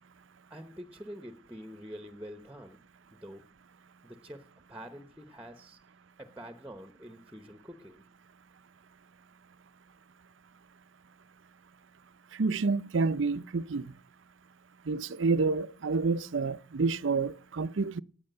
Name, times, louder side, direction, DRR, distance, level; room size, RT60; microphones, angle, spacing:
voice 1, 0.5-2.8 3.1-3.4 4.0-5.8 6.2-8.0, equal, 5° right, 0.9 m, -46 dB
voice 2, 12.4-13.8 14.9-18.0, right 4 dB, 75° right, 0.6 m, -28 dB
18.5 x 8.6 x 6.7 m
head